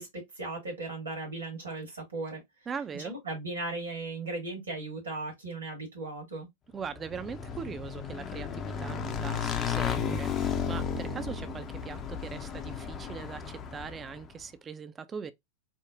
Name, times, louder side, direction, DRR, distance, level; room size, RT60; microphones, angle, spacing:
voice 1, 0.0-2.4 2.9-6.5, right 2 dB, 70° right, 1.3 m, -37 dB
voice 2, 2.7-3.2 6.7-15.3, right 6 dB, 20° right, 0.4 m, -40 dB
Motorcycle / Engine, 6.9-14.2, left 7 dB, 30° left, 0.5 m, -34 dB
4.9 x 2.0 x 2.5 m
figure-of-eight pair, 90°, 0 cm